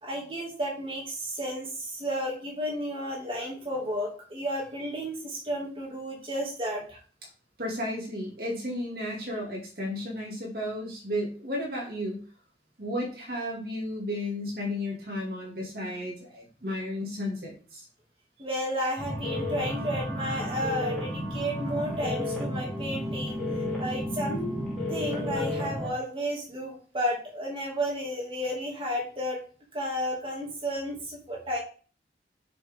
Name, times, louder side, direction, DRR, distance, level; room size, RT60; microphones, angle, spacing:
voice 1, 0.0-7.0 18.4-24.5 24.9-29.4 29.7-31.6, equal, 30° right, -4 dB, 2.7 m, -32 dB
voice 2, 7.6-12.2 12.8-17.8, left 1 dB, 55° right, -3 dB, 2.7 m, -33 dB
sound 1, 19.0-25.9, left 1 dB, 5° left, 3.1 m, -32 dB
7.0 x 6.5 x 3.8 m, 0.40 s
head